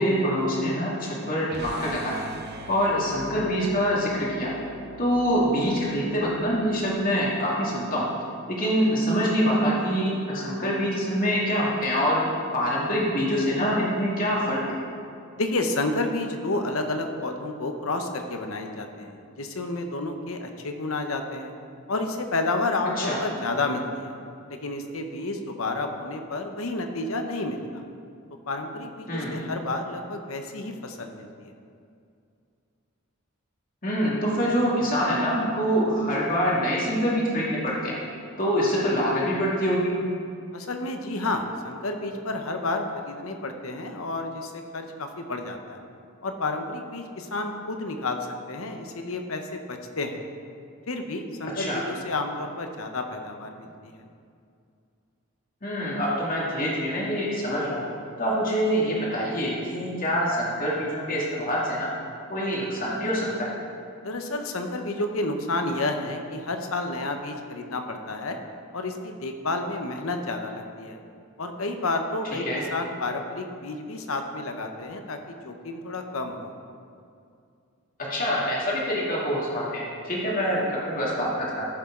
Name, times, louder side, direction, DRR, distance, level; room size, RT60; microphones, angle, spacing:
voice 1, 0.0-2.3 2.7-4.5 5.0-8.1 8.5-12.2 12.5-14.6 23.0-23.2 29.1-29.4 33.8-37.9 38.4-39.9 51.6-51.8 55.6-57.8 58.2-61.9 62.3-63.5 72.4-72.6 78.1-81.7, equal, 40° left, -5 dB, 2.2 m, -25 dB
sound 1, 1.5-7.5, right 2 dB, 50° right, 0.8 m, -43 dB
voice 2, 15.4-21.5 21.9-24.1 24.5-27.8 28.5-31.5 40.5-45.8 46.2-50.2 50.9-54.1 64.0-68.4 68.7-71.0 71.4-76.5, left 2 dB, 75° left, 5 dB, 0.9 m, -30 dB
14.5 x 7.1 x 3.8 m, 2.4 s
head